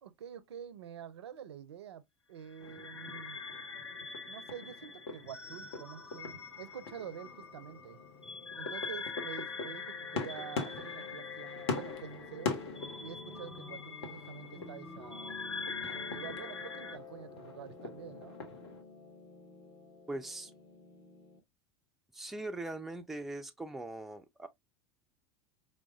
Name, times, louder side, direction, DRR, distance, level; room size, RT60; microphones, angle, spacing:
voice 1, 0.0-2.0 2.3-3.4 4.3-8.0 8.5-12.6 13.0-15.5 15.9-18.4, right 9 dB, 70° right, 0.4 m, -47 dB
sound 1, 2.5-17.0, left 4 dB, 90° left, 0.4 m, -44 dB
sound 2, 2.6-18.8, left 4 dB, 65° left, 0.8 m, -43 dB
Piano, 6.9-21.4, left 4 dB, 25° left, 0.8 m, -51 dB
voice 2, 20.1-20.5 22.1-24.5, right 2 dB, ahead, 0.3 m, -41 dB
4.6 x 2.1 x 2.2 m
figure-of-eight pair, 80°, 14 cm